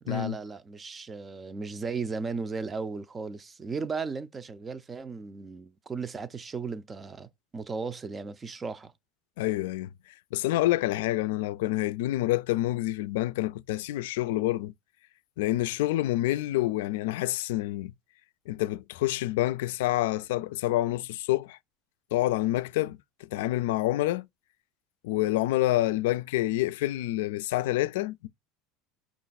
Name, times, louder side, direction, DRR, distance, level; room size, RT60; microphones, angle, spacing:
voice 1, 0.0-8.9, right 4 dB, 20° right, 0.5 m, -36 dB
voice 2, 9.4-9.9 10.3-14.7 15.4-17.9 18.5-21.6 22.1-23.0 23.3-24.3 25.0-28.3, left 16 dB, 85° left, 0.3 m, -27 dB
5.1 x 2.4 x 4.0 m
supercardioid pair, 130°, 0 cm